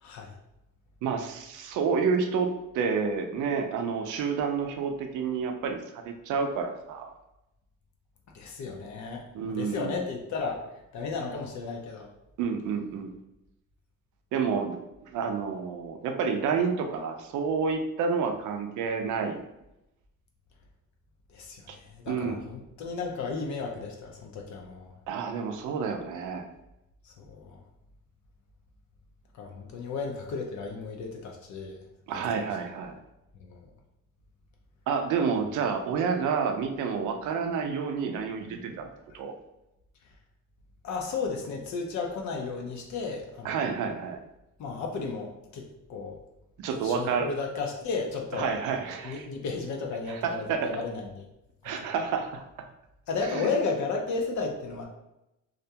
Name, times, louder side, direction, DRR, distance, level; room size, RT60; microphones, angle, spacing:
voice 1, 0.0-0.3 8.3-9.3 9.5-10.6 10.9-12.1 21.3-24.9 27.0-27.6 29.3-31.8 32.3-32.5 33.4-33.7 40.8-43.7 44.6-46.2 46.8-48.5 49.0-51.2 51.6-51.7 53.1-54.8, left 4 dB, 70° left, 1 dB, 0.5 m, -34 dB
voice 2, 1.0-7.1 9.3-10.0 12.4-13.1 14.3-14.8 15.0-19.4 21.7-21.8 22.1-22.4 25.1-26.5 32.1-33.0 34.9-38.9 39.1-39.3 43.4-44.2 46.6-47.3 48.3-49.3 50.1-50.7 51.6-52.4 53.2-53.5, right 5 dB, 80° right, 5 dB, 0.5 m, -29 dB
2.4 x 2.2 x 2.7 m, 0.91 s
cardioid pair, 90°, 30 cm